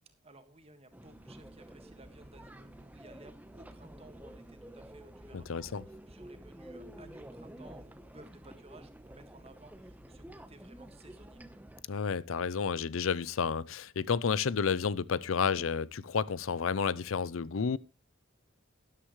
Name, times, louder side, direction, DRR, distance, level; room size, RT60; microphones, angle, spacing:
voice 1, 0.2-11.4, right 2 dB, 30° right, 1.7 m, -56 dB
sound 1, 0.9-11.8, right 1 dB, 10° right, 0.9 m, -50 dB
voice 2, 5.3-5.8 11.9-17.8, left 6 dB, 85° left, 0.5 m, -31 dB
13.0 x 11.5 x 3.1 m
head